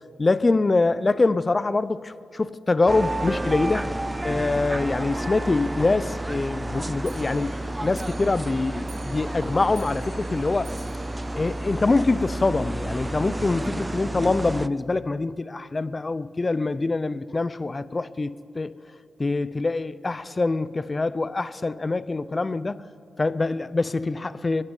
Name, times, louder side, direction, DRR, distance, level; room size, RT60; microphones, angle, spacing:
voice 1, 0.2-3.9 4.2-10.7 11.3-18.7 19.2-22.8 23.2-24.6, left 3 dB, 35° left, 17 dB, 0.6 m, -24 dB
sound 1, 2.9-14.7, right 1 dB, 20° right, 0.5 m, -31 dB
Clock, 7.0-12.5 12.8-12.9 13.2-13.3 13.6-13.7 14.0-14.1 14.8-14.9 15.6-15.7 16.3-16.4, right 4 dB, 75° right, 3.3 m, -49 dB
22.5 x 11.0 x 5.5 m, 2.4 s
supercardioid pair, 50°, 0 cm